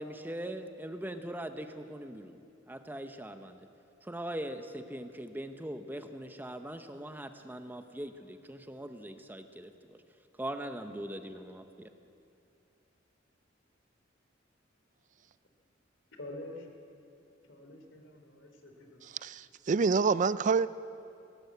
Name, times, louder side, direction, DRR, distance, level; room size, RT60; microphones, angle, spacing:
voice 1, 0.0-2.4 2.7-3.6 4.0-9.7 10.4-11.9, right 1 dB, 10° right, 8 dB, 0.8 m, -41 dB
voice 2, 16.1-16.7 17.4-19.3, left 1 dB, 80° left, 3 dB, 3.2 m, -47 dB
voice 3, 19.2-20.7, right 5 dB, 40° right, 17 dB, 0.4 m, -27 dB
18.5 x 17.0 x 8.3 m, 2.6 s
head